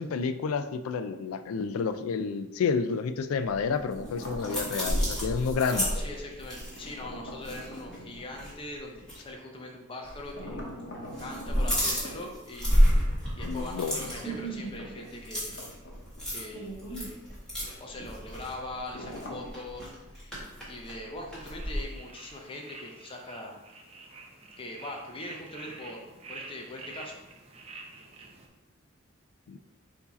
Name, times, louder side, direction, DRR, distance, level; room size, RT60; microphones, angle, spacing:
voice 1, 0.0-5.9 13.4-14.0 29.5-29.6, left 5 dB, 85° left, 11 dB, 0.3 m, -30 dB
sound 1, 3.5-8.0 8.3-8.5 9.0-9.2 10.0-10.7 10.9-21.8, equal, 5° left, 1.5 m, -30 dB
sound 2, 3.9-5.2 6.8-8.2 10.3-12.2 13.9-16.3 16.6-16.7 18.9-19.6, equal, 55° left, 0.8 m, -43 dB
voice 2, 5.7-10.6 11.2-12.9 13.4-15.6 16.3-17.2 17.8-23.6 24.6-27.2, left 1 dB, 25° left, 1 dB, 0.5 m, -41 dB
sound 3, 21.6-28.5, right 3 dB, 30° right, 0.5 m, -48 dB
4.6 x 2.7 x 4.0 m, 0.99 s
head